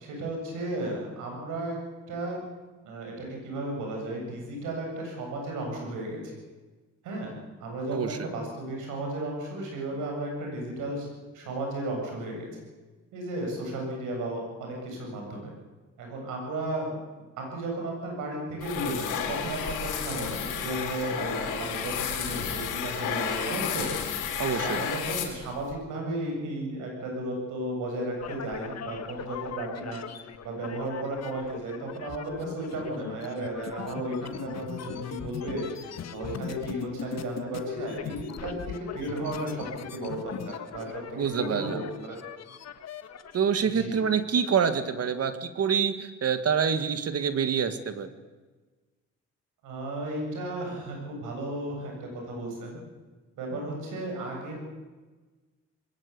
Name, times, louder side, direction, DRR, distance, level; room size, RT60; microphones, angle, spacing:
voice 1, 0.0-1.8 2.1-2.4 2.8-6.4 7.0-7.3 7.6-11.1 11.3-12.5 13.1-15.5 16.0-17.0 17.4-23.9 24.6-42.2 43.7-44.0 49.6-52.8 53.4-54.6, right 1 dB, 90° right, 1 dB, 7.8 m, -34 dB
sound 1, 18.6-25.7, left 7 dB, 90° left, 3.6 m, -32 dB
voice 2, 24.4-24.8 41.2-41.8 43.3-48.1, right 7 dB, 55° right, 10 dB, 1.8 m, -26 dB
sound 2, 28.2-43.4, left 8 dB, 60° left, 1.5 m, -39 dB
21.0 x 17.5 x 8.5 m, 1.3 s
cardioid pair, 90°, 30 cm